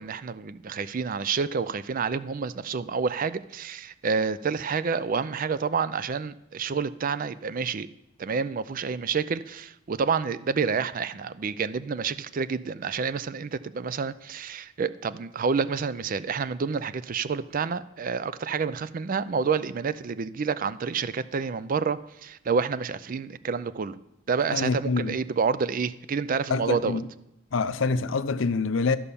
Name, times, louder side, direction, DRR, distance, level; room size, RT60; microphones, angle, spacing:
voice 1, 0.0-7.9 8.2-24.0 24.3-27.0, right 5 dB, 45° right, 0.4 m, -28 dB
voice 2, 24.5-25.2 26.5-27.1 27.5-29.0, left 4 dB, 75° left, 0.6 m, -26 dB
13.5 x 5.6 x 6.9 m
head